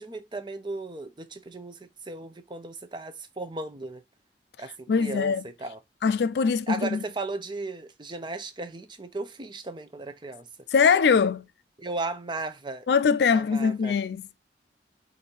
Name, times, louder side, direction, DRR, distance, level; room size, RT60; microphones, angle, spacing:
voice 1, 0.0-4.0 4.6-5.8 6.7-10.5 11.8-12.9 13.3-14.0, right 3 dB, 25° right, 0.6 m, -36 dB
voice 2, 4.9-5.4 6.0-7.0 10.7-11.5 12.9-14.3, left 5 dB, 65° left, 0.4 m, -22 dB
5.4 x 2.6 x 3.1 m
head